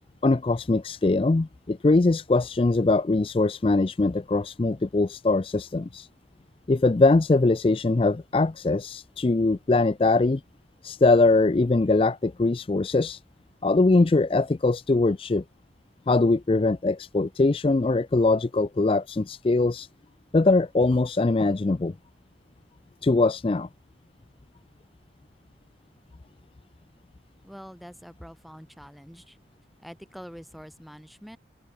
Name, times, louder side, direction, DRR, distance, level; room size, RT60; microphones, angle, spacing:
voice 1, 0.2-6.1 6.7-10.4 10.8-13.2 13.6-15.4 16.1-19.9 20.3-21.9 23.0-23.7, left 3 dB, 30° left, 0.4 m, -22 dB
voice 2, 27.4-29.4 29.8-31.4, equal, ahead, 3.2 m, -45 dB
open air
head